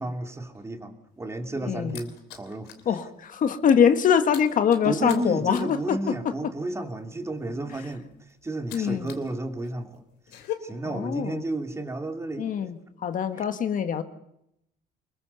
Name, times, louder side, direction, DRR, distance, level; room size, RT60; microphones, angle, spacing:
voice 1, 0.0-3.0 4.8-8.1 8.4-10.0 10.6-12.5 13.4-13.5, right 2 dB, 15° right, 5 dB, 2.7 m, -32 dB
sound 1, 1.1-2.9 3.2-3.5 3.7-9.3 9.6-10.5, left 13 dB, 90° left, 3.2 m, -42 dB
voice 2, 1.6-2.0 2.8-6.1 8.7-9.1 10.8-11.4 12.4-14.0, left 7 dB, 50° left, 9 dB, 1.6 m, -23 dB
25.5 x 22.0 x 7.0 m, 0.80 s
cardioid pair, 110°, 17 cm